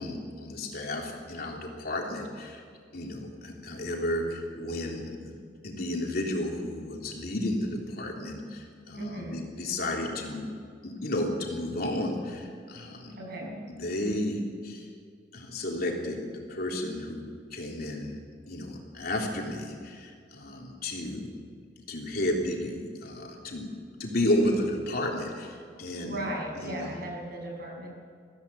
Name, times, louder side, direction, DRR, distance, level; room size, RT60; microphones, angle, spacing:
voice 1, 0.0-2.6 2.9-5.3 5.6-10.5 10.8-13.2 13.4-13.5 13.8-14.9 15.3-17.3 17.5-18.2 18.5-21.3 21.9-23.7 24.0-26.2 26.6-27.0, left 1 dB, 60° left, 0 dB, 3.5 m, -32 dB
voice 2, 8.9-9.5 13.2-13.5 26.0-27.9, right 1 dB, 60° right, -2 dB, 6.7 m, -36 dB
22.0 x 15.0 x 8.3 m, 2.1 s
head